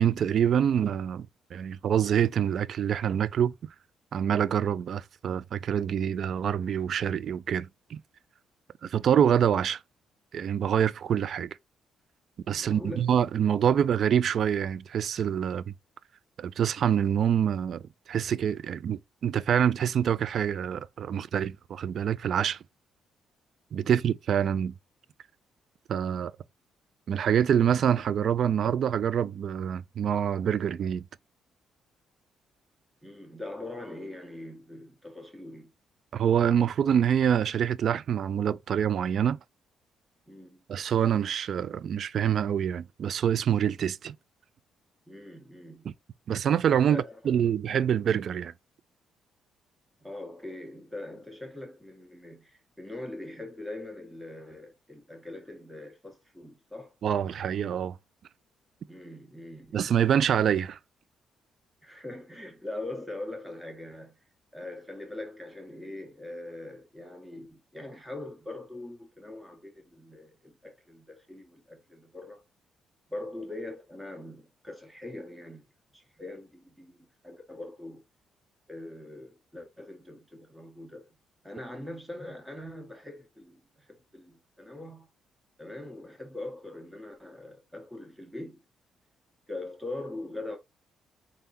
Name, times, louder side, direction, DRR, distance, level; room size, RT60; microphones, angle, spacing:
voice 1, 0.0-3.5 4.1-8.0 8.8-9.8 10.3-11.6 12.5-15.7 16.4-22.6 23.7-24.7 25.9-26.3 27.1-31.0 36.1-39.4 40.7-44.1 45.9-46.0 46.3-48.5 57.0-58.0 59.7-60.8, right 9 dB, 60° right, 0.3 m, -26 dB
voice 2, 12.6-13.1 23.8-24.0 33.0-35.7 40.3-40.6 45.1-45.9 46.9-47.3 50.0-56.9 58.9-59.9 61.8-64.2 64.5-72.4 73.1-75.6 75.9-78.0 78.7-81.2 81.4-85.1 85.6-88.6 89.5-90.6, left 2 dB, 5° right, 1.7 m, -42 dB
3.9 x 3.6 x 2.8 m
cardioid pair, 90°, 0 cm